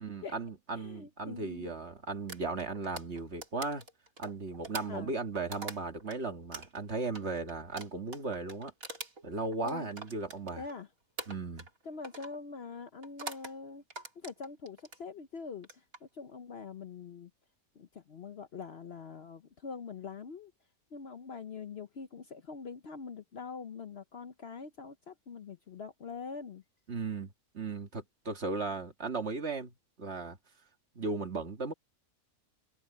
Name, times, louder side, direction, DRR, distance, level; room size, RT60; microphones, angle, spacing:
voice 1, 0.0-3.8 4.2-8.7 9.2-10.6 11.3-11.7 26.9-30.4 31.0-31.7, right 3 dB, 50° right, 2.0 m, -36 dB
voice 2, 0.7-1.7 4.9-5.1 9.6-9.9 10.6-10.9 11.8-13.8 14.2-17.3 17.8-20.5 20.9-26.6, left 5 dB, 50° left, 1.0 m, -44 dB
sound 1, 2.3-6.2 6.5-10.8 11.2-11.8 12.0-12.4 13.0-13.5 13.9-15.0 15.6-16.0, right 3 dB, 70° right, 3.5 m, -44 dB
omnidirectional pair, 1.5 m